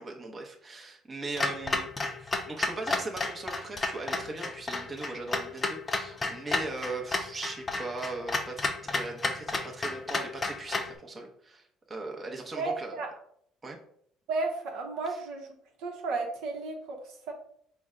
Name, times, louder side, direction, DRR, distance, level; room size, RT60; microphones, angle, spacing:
voice 1, 0.0-1.9 2.2-13.0 13.6-13.8, right 2 dB, 25° right, 1 dB, 0.8 m, -39 dB
Clock, 1.4-11.0, left 3 dB, 25° left, 0.5 m, -32 dB
voice 2, 12.6-13.1 14.3-15.5 15.8-17.3, right 3 dB, 75° right, 2 dB, 0.8 m, -33 dB
4.3 x 2.2 x 3.7 m, 0.67 s
supercardioid pair, 95°, 0 cm